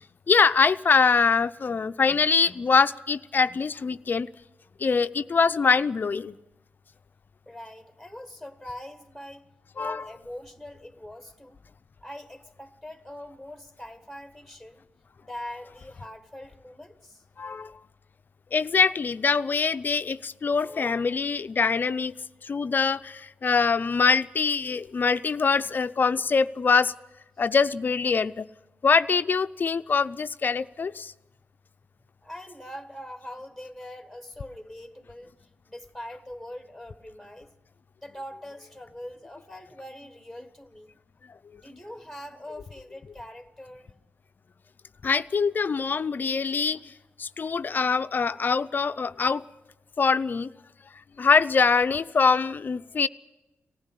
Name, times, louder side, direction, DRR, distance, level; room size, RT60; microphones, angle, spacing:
voice 1, 0.3-4.3 4.8-6.4 9.8-10.0 17.4-17.7 18.5-22.1 22.4-26.9 27.4-28.5 28.8-31.1 45.0-46.9 47.2-49.4 50.0-50.5 51.2-53.1, left 5 dB, 45° left, 0.6 m, -23 dB
voice 2, 7.4-9.5 9.8-11.6 12.0-14.8 15.2-17.2 32.2-35.3 35.7-37.5 38.0-40.9 41.5-43.9, left 1 dB, ahead, 1.7 m, -42 dB
19.0 x 15.0 x 9.9 m
cardioid pair, 75°, 5 cm